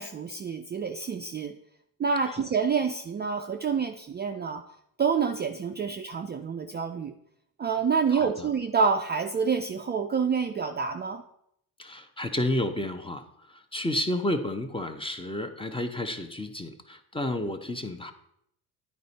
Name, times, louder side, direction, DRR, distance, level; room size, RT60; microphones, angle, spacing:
voice 1, 0.0-1.5 2.0-4.6 5.0-7.1 7.6-11.2, right 6 dB, 25° right, 5 dB, 0.4 m, -27 dB
voice 2, 8.1-8.5 11.8-18.1, left 1 dB, 10° left, 7 dB, 0.7 m, -31 dB
9.5 x 4.3 x 4.1 m, 0.75 s
supercardioid pair, 75°, 45 cm